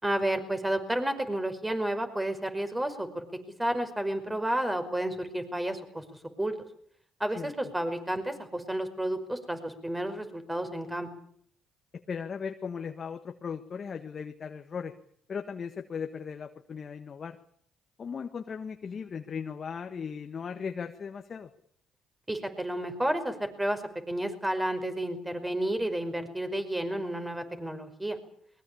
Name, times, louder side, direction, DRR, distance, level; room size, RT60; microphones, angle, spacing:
voice 1, 0.0-3.2 3.6-6.0 6.4-6.5 7.2-11.1 22.3-28.2, right 1 dB, 10° right, 8 dB, 5.3 m, -31 dB
voice 2, 11.9-14.9 15.3-17.4 18.0-21.5, left 6 dB, 45° left, 6 dB, 1.5 m, -37 dB
22.5 x 21.5 x 8.6 m, 0.64 s
supercardioid pair, 65°, 0 cm